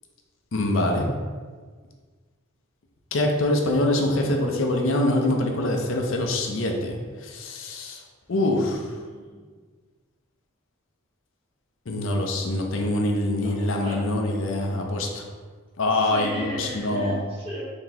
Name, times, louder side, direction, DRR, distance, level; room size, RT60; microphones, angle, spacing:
voice 1, 0.5-1.1 3.1-7.0 7.2-8.0 8.3-8.8 11.9-15.3 15.8-17.2, left 1 dB, 65° left, 2 dB, 0.6 m, -24 dB
voice 2, 8.3-9.4 13.4-14.0 15.8-17.6, left 1 dB, 25° right, -7 dB, 1.2 m, -37 dB
3.9 x 3.6 x 2.8 m, 1.5 s
head